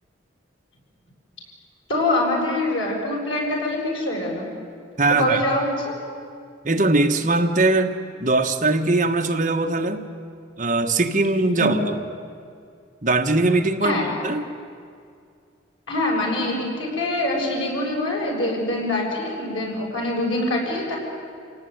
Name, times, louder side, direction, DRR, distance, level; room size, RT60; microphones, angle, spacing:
voice 1, 1.9-4.5 5.1-5.9 11.6-11.7 13.8-14.1 15.9-21.0, left 1 dB, 90° left, -2 dB, 7.6 m, -24 dB
voice 2, 5.0-5.4 6.6-10.0 10.6-12.0 13.0-14.5, right 2 dB, 40° right, 4 dB, 1.4 m, -21 dB
27.5 x 18.0 x 9.4 m, 2.3 s
head